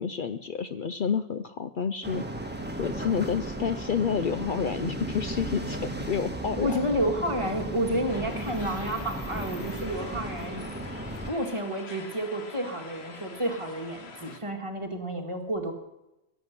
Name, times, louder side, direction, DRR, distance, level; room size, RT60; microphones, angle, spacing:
voice 1, 0.0-2.2 2.8-6.8, left 7 dB, 55° left, 10 dB, 0.7 m, -29 dB
sound 1, 2.0-11.3, right 1 dB, 10° right, 1.5 m, -35 dB
voice 2, 6.6-10.7 11.3-15.7, right 1 dB, 30° right, 2 dB, 2.0 m, -30 dB
sound 2, 8.1-14.4, left 4 dB, 75° left, 1.5 m, -45 dB
16.5 x 7.7 x 9.7 m, 0.97 s
omnidirectional pair, 1.1 m